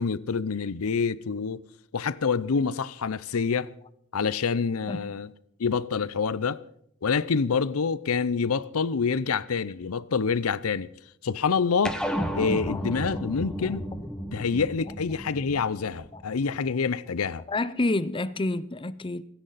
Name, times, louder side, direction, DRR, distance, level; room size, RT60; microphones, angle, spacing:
voice 1, 0.0-1.6 1.9-3.7 4.1-5.3 5.6-6.6 7.0-10.9 11.2-12.0 12.3-13.9 14.3-17.4, left 5 dB, 85° left, 0.6 m, -27 dB
sound 1, 11.8-16.6, equal, 5° left, 1.3 m, -33 dB
voice 2, 17.5-19.2, left 2 dB, 25° left, 0.6 m, -29 dB
28.5 x 10.5 x 4.1 m
head